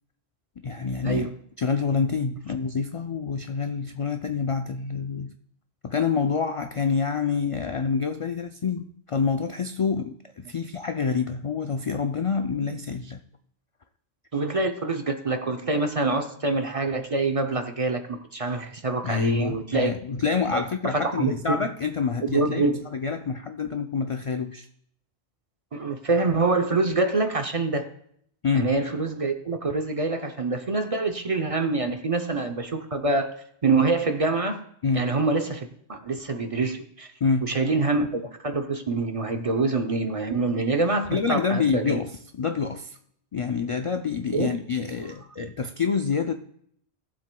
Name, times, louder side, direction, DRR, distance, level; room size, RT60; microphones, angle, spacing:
voice 1, 0.6-1.3 1.6-5.4 5.8-13.2 19.0-24.7 28.4-28.7 34.8-35.1 37.2-37.6 41.1-43.0 43.3-46.3, left 5 dB, 55° left, 7 dB, 0.3 m, -27 dB
voice 2, 14.3-19.9 20.5-20.6 20.9-21.6 22.2-22.8 25.7-27.9 28.5-33.3 33.6-34.6 34.9-37.1 37.4-42.0 44.3-44.5, right 3 dB, 40° right, 6 dB, 0.6 m, -25 dB
17.5 x 7.6 x 2.2 m, 0.69 s
omnidirectional pair, 1.1 m